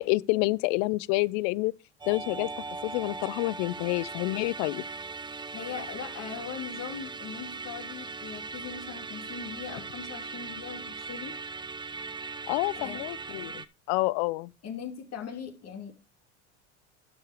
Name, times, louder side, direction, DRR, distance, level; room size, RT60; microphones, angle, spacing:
voice 1, 0.0-1.7 2.1-2.5 2.8-4.8 12.5-14.5, left 22 dB, 60° left, 0.5 m, -28 dB
Musical instrument, 2.0-13.7, right 4 dB, 15° right, 0.6 m, -39 dB
voice 2, 5.5-11.4 12.7-13.0 14.6-15.9, left 7 dB, 45° left, 2.7 m, -40 dB
12.0 x 4.9 x 5.0 m
hypercardioid pair, 90°, 36 cm